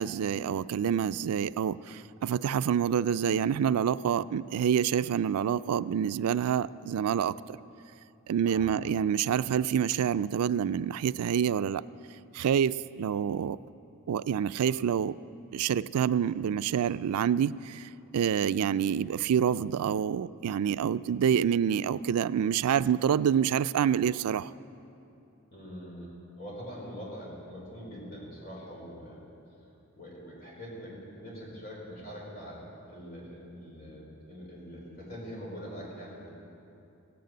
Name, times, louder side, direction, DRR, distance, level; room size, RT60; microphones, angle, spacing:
voice 1, 0.0-7.6 8.3-11.8 12.3-13.6 14.1-15.2 15.5-24.5, right 8 dB, 90° right, 16 dB, 0.3 m, -27 dB
voice 2, 8.4-8.7 25.5-29.2 29.9-36.3, equal, 40° left, -4 dB, 4.3 m, -43 dB
17.0 x 9.4 x 7.7 m, 2.7 s
head